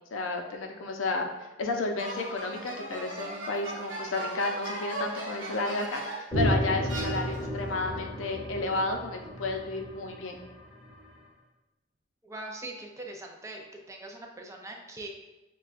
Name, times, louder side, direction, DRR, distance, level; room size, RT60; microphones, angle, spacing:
voice 1, 0.1-1.3 1.6-10.4, left 2 dB, 85° left, 3 dB, 0.5 m, -32 dB
sound 1, 2.0-6.4 6.9-7.6, right 1 dB, 65° right, 1.3 m, -38 dB
sound 2, 6.3-11.0, equal, 5° left, 1.0 m, -32 dB
voice 2, 12.2-15.1, right 2 dB, 15° right, 1 dB, 0.4 m, -42 dB
6.1 x 2.2 x 2.4 m, 1.1 s
head